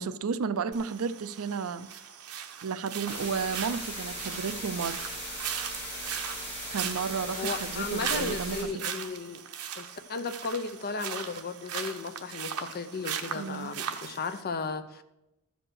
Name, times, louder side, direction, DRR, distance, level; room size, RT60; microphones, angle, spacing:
voice 1, 0.0-1.9 2.6-5.0 6.7-8.8 13.3-13.7, right 5 dB, 65° right, 0.5 m, -32 dB
sound 1, 0.7-14.4, right 8 dB, 85° right, 0.9 m, -38 dB
sound 2, 3.0-8.6, equal, 10° left, 4.6 m, -38 dB
voice 2, 7.3-9.4 9.8-15.0, left 4 dB, 45° left, 0.7 m, -35 dB
13.5 x 5.1 x 6.3 m
head